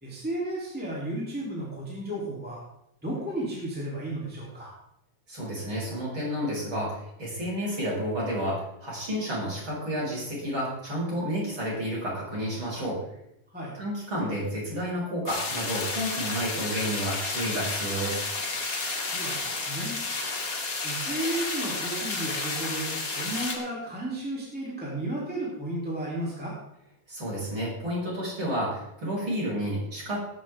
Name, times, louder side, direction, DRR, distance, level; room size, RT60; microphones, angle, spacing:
voice 1, 0.0-2.6 3.0-4.7 13.5-13.7 19.0-20.0 20.8-26.5, right 1 dB, 5° right, -5 dB, 3.0 m, -33 dB
voice 2, 5.3-13.0 13.8-18.2 27.1-30.2, equal, 30° right, -5 dB, 6.9 m, -31 dB
sound 1, 15.3-23.6, left 3 dB, 30° left, 1.8 m, -31 dB
20.0 x 9.2 x 3.8 m, 0.79 s
omnidirectional pair, 4.2 m